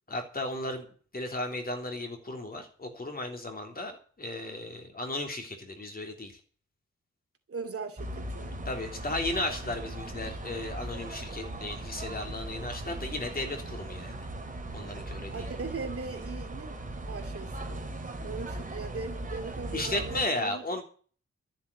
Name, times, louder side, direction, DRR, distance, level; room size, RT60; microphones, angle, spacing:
voice 1, 0.1-0.8 1.1-3.9 4.2-6.3 8.6-14.2 14.7-15.5 19.7-20.8, left 2 dB, 30° left, 3.3 m, -35 dB
voice 2, 7.5-8.7 15.3-17.9 18.2-20.6, right 4 dB, 50° right, 2.5 m, -39 dB
sound 1, 8.0-20.3, right 1 dB, 30° right, 2.9 m, -39 dB
13.5 x 7.8 x 8.4 m
wide cardioid pair, 145°, 29 cm